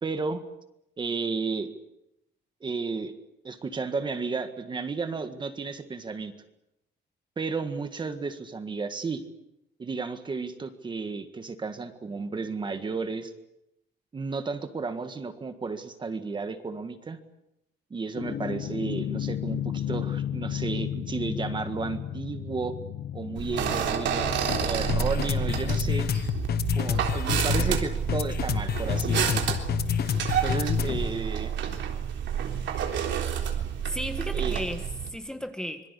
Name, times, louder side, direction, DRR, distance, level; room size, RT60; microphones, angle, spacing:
voice 1, 0.0-0.4 1.0-1.7 2.6-3.1 3.4-6.3 7.4-9.2 9.8-13.3 14.1-17.2 17.9-22.8 23.1-26.1 26.7-29.6 30.4-31.5 34.3-34.6, right 4 dB, 25° right, 9 dB, 1.7 m, -33 dB
sound 1, 18.1-31.2, left 9 dB, 60° left, 1.1 m, -30 dB
sound 2, 23.4-35.1, right 8 dB, 90° right, 3.6 m, -29 dB
voice 2, 33.9-35.9, equal, 5° left, 7 dB, 1.4 m, -35 dB
25.5 x 22.5 x 8.3 m, 0.85 s
cardioid pair, 175°, 19 cm